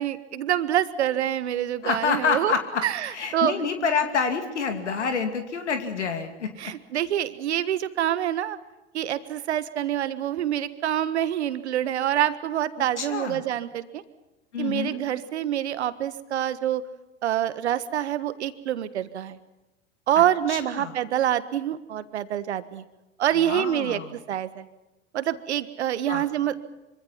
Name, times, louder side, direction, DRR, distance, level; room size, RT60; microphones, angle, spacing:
voice 1, 0.0-2.5 2.8-3.5 6.6-8.6 8.9-14.0 14.6-16.8 17.2-19.4 20.1-22.8 23.2-24.0 24.3-24.7 25.1-26.6, right 11 dB, 70° right, 13 dB, 1.6 m, -26 dB
voice 2, 1.8-6.7 12.8-13.4 14.5-15.0 20.2-20.3 20.5-20.9 23.4-24.1 26.1-26.2, left 6 dB, 75° left, 6 dB, 2.6 m, -28 dB
25.5 x 25.0 x 5.9 m, 1.0 s
figure-of-eight pair, 80°, 35 cm